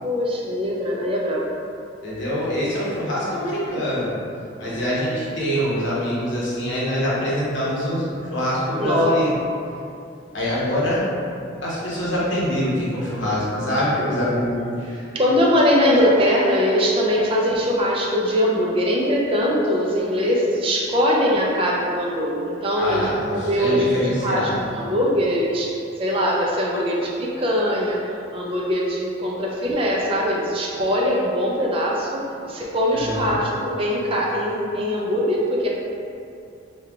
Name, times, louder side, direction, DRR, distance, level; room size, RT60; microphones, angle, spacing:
voice 1, 0.0-1.5 4.6-4.9 8.7-9.1 15.1-24.0 24.2-35.7, equal, 25° right, -3 dB, 0.4 m, -22 dB
voice 2, 2.0-4.1 4.6-8.0 8.3-9.3 10.3-11.1 11.6-15.0 22.8-24.6 32.9-33.3, equal, 70° left, -8 dB, 0.9 m, -24 dB
3.1 x 2.3 x 3.4 m, 2.5 s
head